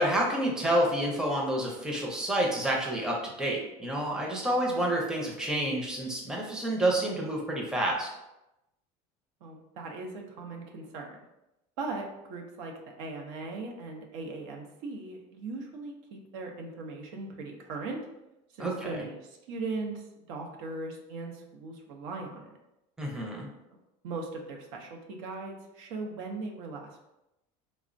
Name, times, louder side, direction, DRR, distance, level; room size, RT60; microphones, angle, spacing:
voice 1, 0.0-8.1 18.6-19.0 23.0-23.5, right 1 dB, 5° right, -2 dB, 0.5 m, -29 dB
voice 2, 9.4-11.2 11.8-12.7 13.0-18.0 18.5-22.6 24.0-27.0, right 3 dB, 85° right, 2 dB, 0.6 m, -39 dB
3.3 x 2.0 x 2.5 m, 0.92 s
supercardioid pair, 130°, 17 cm